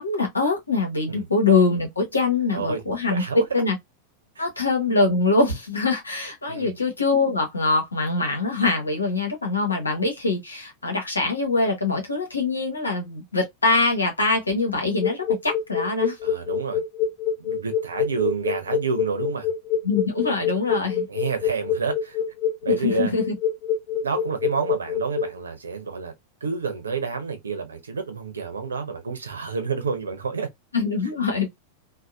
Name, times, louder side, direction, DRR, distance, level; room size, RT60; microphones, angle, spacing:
voice 1, 0.0-3.2 3.5-3.8 4.4-16.2 19.8-21.1 22.7-23.3 30.7-31.5, left 3 dB, 80° left, 1.0 m, -23 dB
voice 2, 3.1-3.4 4.4-4.5 6.5-6.7 16.2-16.8 17.4-19.5 21.1-22.2 22.6-23.1 24.0-26.1 26.4-30.5, right 5 dB, 70° right, 0.7 m, -29 dB
sound 1, 15.0-25.4, left 7 dB, 35° left, 0.4 m, -25 dB
2.7 x 2.1 x 2.2 m
figure-of-eight pair, 90°, 0 cm